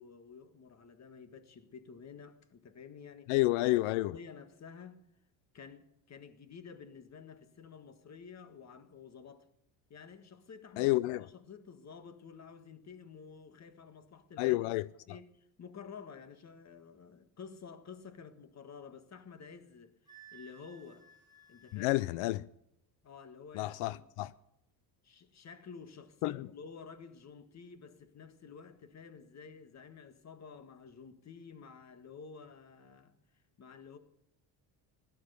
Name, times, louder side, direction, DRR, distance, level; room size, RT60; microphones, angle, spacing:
voice 1, 0.0-3.3 4.1-5.0 5.5-9.5 9.9-10.9 11.3-14.7 15.1-19.9 20.3-21.1 21.5-22.3 23.0-24.0 25.0-33.1 33.6-34.0, left 6 dB, 35° left, 1.6 m, -51 dB
voice 2, 3.3-4.1 10.8-11.3 14.4-15.2 21.7-22.5 23.5-24.3 26.2-26.5, left 19 dB, 85° left, 0.6 m, -30 dB
Wind instrument woodwind instrument, 20.1-22.1, right 5 dB, 10° right, 2.6 m, -58 dB
16.5 x 12.5 x 6.7 m
cardioid pair, 120°, 48 cm